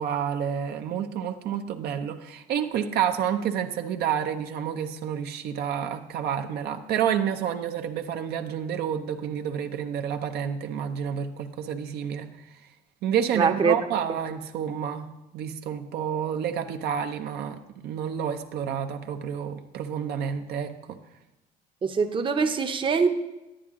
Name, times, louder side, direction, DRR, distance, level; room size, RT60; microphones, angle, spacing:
voice 1, 0.0-12.4 13.0-21.0, right 8 dB, 70° right, 0.6 m, -29 dB
voice 2, 13.4-13.7 21.8-23.1, right 5 dB, 30° right, 0.7 m, -23 dB
10.0 x 9.3 x 3.6 m
cardioid pair, 110°, 17 cm